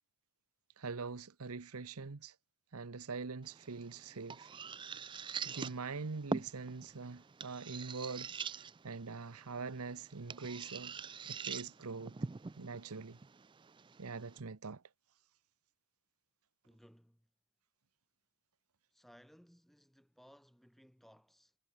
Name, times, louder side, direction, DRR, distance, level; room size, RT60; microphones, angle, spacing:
voice 1, 0.8-2.3 2.7-4.5 5.4-8.3 8.8-11.0 11.3-12.1 12.6-13.2 14.0-14.8, right 4 dB, 80° right, 0.9 m, -43 dB
sound 1, 3.4-14.4, right 5 dB, 20° right, 0.4 m, -45 dB
voice 2, 16.6-17.3 18.9-21.6, equal, ahead, 2.8 m, -62 dB
head